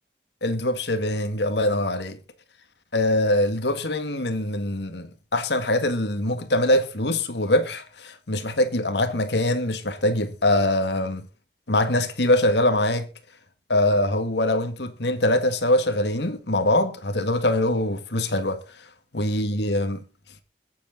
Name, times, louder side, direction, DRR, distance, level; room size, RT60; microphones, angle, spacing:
voice 1, 0.4-2.2 2.9-11.2 11.7-13.1 13.7-18.9 19.1-20.0, left 1 dB, 75° left, 1.8 m, -23 dB
21.5 x 8.5 x 3.8 m
head